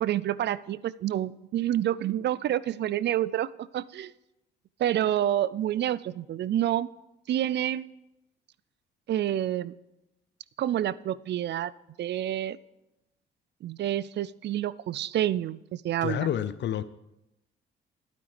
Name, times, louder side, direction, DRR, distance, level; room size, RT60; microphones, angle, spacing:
voice 1, 0.0-4.1 4.8-6.9 7.3-7.8 9.1-9.7 10.6-11.7 12.0-12.6 13.6-16.3, right 12 dB, 60° right, 20 dB, 0.4 m, -28 dB
voice 2, 16.0-16.8, left 10 dB, 65° left, 15 dB, 0.6 m, -29 dB
12.0 x 9.2 x 5.1 m, 0.89 s
cardioid pair, 90°, 20 cm